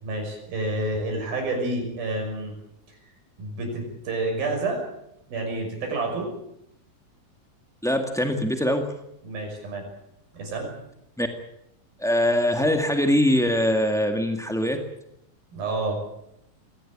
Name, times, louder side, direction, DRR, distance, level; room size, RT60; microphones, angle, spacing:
voice 1, 0.0-2.5 3.4-4.8 5.3-6.3 9.2-9.9 10.3-10.7 15.5-16.0, right 2 dB, 80° right, 3 dB, 8.1 m, -29 dB
voice 2, 7.8-8.9 11.2-11.3 12.0-14.8, left 1 dB, 5° left, 4 dB, 0.4 m, -22 dB
23.0 x 18.0 x 8.9 m, 0.80 s
omnidirectional pair, 4.1 m